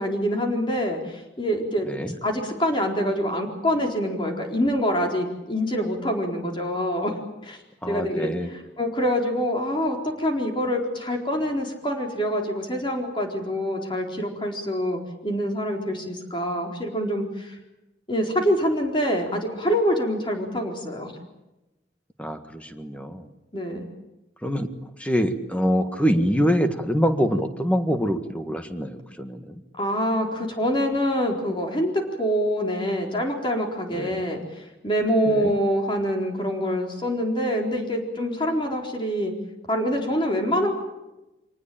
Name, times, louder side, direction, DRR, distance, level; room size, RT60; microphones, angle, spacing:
voice 1, 0.0-7.2 7.4-7.6 7.9-17.6 18.1-21.1 23.5-23.9 29.8-39.3 39.7-40.7, equal, 25° left, 2 dB, 4.2 m, -25 dB
voice 2, 7.8-8.5 22.2-23.2 24.4-24.7 25.0-29.6 33.9-34.2 35.3-35.5, equal, 5° left, 7 dB, 1.6 m, -25 dB
25.0 x 19.0 x 8.8 m, 0.99 s
head